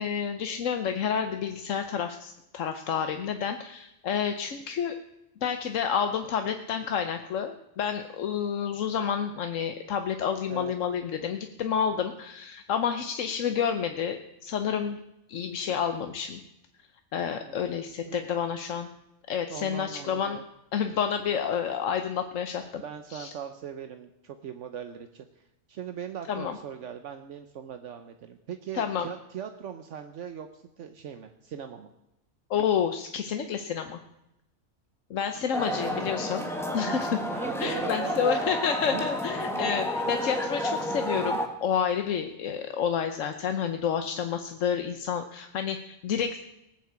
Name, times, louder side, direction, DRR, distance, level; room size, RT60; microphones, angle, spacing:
voice 1, 0.0-5.0 5.4-15.0 15.3-16.4 17.1-18.9 19.3-20.4 20.7-22.8 23.1-23.3 26.3-26.5 28.7-29.1 32.5-34.0 35.1-36.4 36.7-37.2 37.6-46.4, left 7 dB, 90° left, 7 dB, 1.2 m, -29 dB
voice 2, 17.4-18.3 19.5-20.4 22.8-31.9 35.7-36.1 36.9-37.0 37.3-39.1 39.5-39.7, right 8 dB, 70° right, 7 dB, 1.2 m, -40 dB
sound 1, 35.5-41.5, equal, ahead, 1.6 m, -30 dB
18.5 x 7.6 x 8.2 m, 0.86 s
omnidirectional pair, 1.3 m